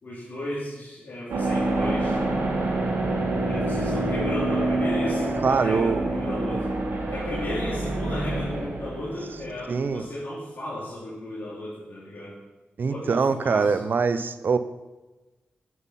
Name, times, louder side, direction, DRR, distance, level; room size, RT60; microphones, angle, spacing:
voice 1, 0.0-2.2 3.4-6.7 7.1-12.3 12.9-13.8, left 1 dB, 60° left, -7 dB, 3.2 m, -34 dB
sound 1, 1.3-9.9, right 2 dB, 80° right, 2.6 m, -27 dB
voice 2, 5.4-6.1 9.7-10.1 12.8-14.6, right 5 dB, 60° right, 12 dB, 0.7 m, -23 dB
9.5 x 8.2 x 5.7 m, 1.1 s
cardioid pair, 80°, 4 cm